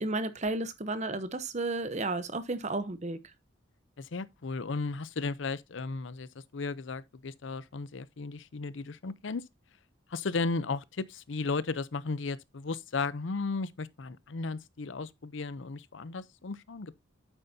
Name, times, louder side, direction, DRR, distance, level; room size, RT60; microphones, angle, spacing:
voice 1, 0.0-3.2, right 2 dB, 35° right, 0.9 m, -32 dB
voice 2, 4.0-9.4 10.1-16.9, left 4 dB, 70° left, 0.6 m, -35 dB
9.1 x 8.0 x 2.7 m
head